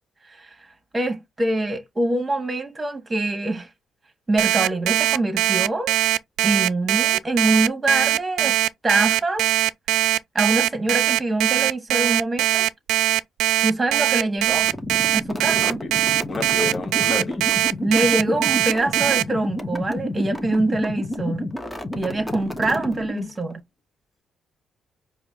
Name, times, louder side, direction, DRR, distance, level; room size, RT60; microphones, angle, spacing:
voice 1, 0.9-3.7 4.3-5.9 6.4-9.5 10.3-12.7 13.6-14.7 15.1-15.8 17.8-21.5 22.0-23.6, right 2 dB, 20° right, 1.5 m, -24 dB
Alarm, 4.4-19.2, right 14 dB, 90° right, 0.3 m, -20 dB
sound 1, 14.5-23.5, left 1 dB, 5° left, 1.0 m, -30 dB
voice 2, 15.6-15.9 16.3-17.5, left 3 dB, 45° left, 1.2 m, -30 dB
4.9 x 2.3 x 3.6 m
cardioid pair, 90°, 0 cm